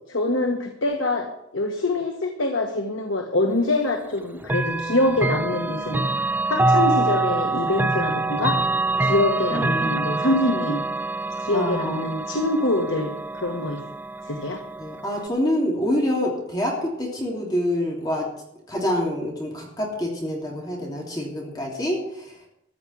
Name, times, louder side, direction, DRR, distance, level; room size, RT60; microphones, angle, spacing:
voice 1, 0.1-6.0 6.5-8.6 9.0-10.8 11.4-13.8 14.2-14.6, left 2 dB, 85° left, 3 dB, 1.5 m, -24 dB
Chime / Clock, 4.4-15.3, right 2 dB, 10° right, 0.4 m, -25 dB
voice 2, 9.5-10.1 11.5-12.0 14.8-18.3 18.7-22.0, left 1 dB, 20° left, -2 dB, 3.1 m, -26 dB
14.5 x 6.0 x 9.6 m, 0.78 s
head